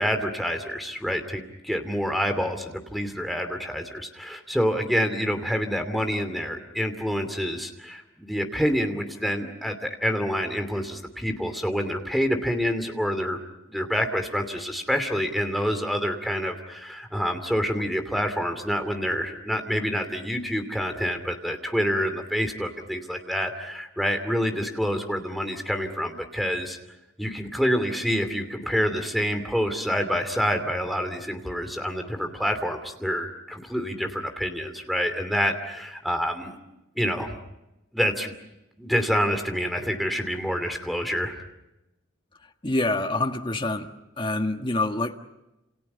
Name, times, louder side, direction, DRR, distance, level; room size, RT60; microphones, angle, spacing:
voice 1, 0.0-13.4 13.7-26.8 27.2-36.6 37.0-37.4 37.9-38.3 38.8-41.3, equal, ahead, 5 dB, 2.7 m, -27 dB
voice 2, 42.6-43.9 44.2-45.2, left 2 dB, 25° left, 5 dB, 1.6 m, -26 dB
30.0 x 28.0 x 5.7 m, 0.96 s
head